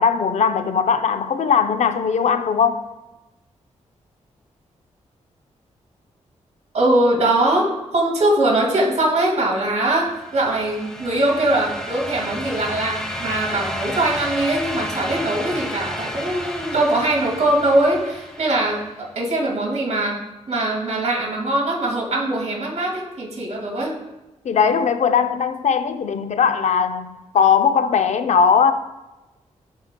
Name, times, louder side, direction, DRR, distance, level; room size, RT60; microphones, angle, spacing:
voice 1, 0.0-2.9 24.4-28.7, left 6 dB, 70° left, 0.5 m, -19 dB
voice 2, 6.7-20.2 20.5-23.9, right 1 dB, 65° right, 2.1 m, -21 dB
sound 1, 10.0-18.9, equal, 5° left, 0.9 m, -32 dB
12.0 x 4.4 x 2.2 m
cardioid pair, 75°, 13 cm